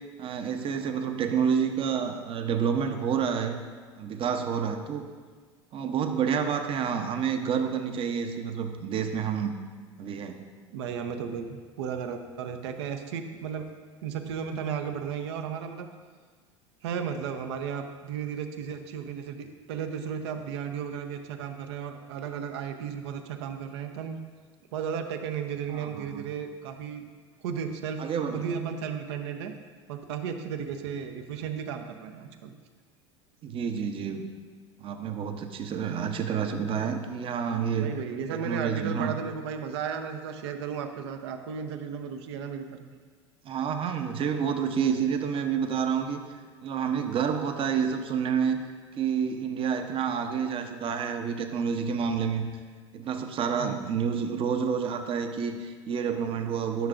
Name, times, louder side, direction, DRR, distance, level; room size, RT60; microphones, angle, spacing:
voice 1, 0.2-3.6 4.0-5.1 5.7-9.5 10.0-10.4 25.7-26.2 28.0-28.7 33.4-34.3 34.8-37.9 38.3-39.1 43.4-46.2 46.6-48.6 48.9-52.5 52.9-56.9, right 7 dB, 35° right, 6 dB, 0.8 m, -29 dB
voice 2, 10.7-13.7 14.0-15.9 16.8-24.2 24.7-27.1 27.4-28.1 28.3-29.5 29.9-32.5 37.8-42.9 47.3-47.4 53.6-53.8, right 7 dB, 65° right, 7 dB, 0.8 m, -34 dB
12.0 x 6.5 x 2.6 m, 1.5 s
figure-of-eight pair, 80°, 15 cm